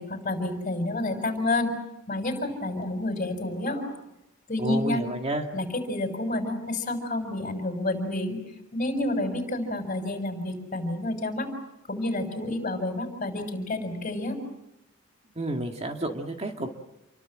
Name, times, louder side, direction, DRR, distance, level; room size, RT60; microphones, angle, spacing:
voice 1, 0.0-1.7 2.1-3.9 4.5-5.0 5.5-8.4 8.7-11.5 11.9-14.4, left 2 dB, 40° left, 6 dB, 6.3 m, -29 dB
voice 2, 4.6-5.5 15.4-16.7, right 1 dB, 30° right, 4 dB, 2.0 m, -30 dB
29.0 x 24.0 x 7.6 m, 0.90 s
head